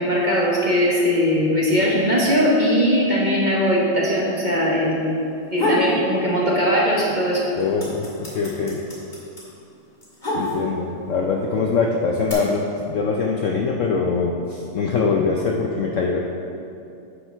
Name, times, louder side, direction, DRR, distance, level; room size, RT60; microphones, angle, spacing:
voice 1, 0.0-5.0 5.5-7.5, equal, 30° right, -4 dB, 1.0 m, -20 dB
sound 1, 5.3-5.9 6.3-7.1 7.3-10.9 11.7-12.3, left 1 dB, 25° left, 2.3 m, -26 dB
voice 2, 7.6-8.1 8.3-8.8 10.3-16.2, left 4 dB, 85° left, 0 dB, 0.6 m, -23 dB
11.0 x 7.5 x 3.4 m, 2.6 s
omnidirectional pair, 2.1 m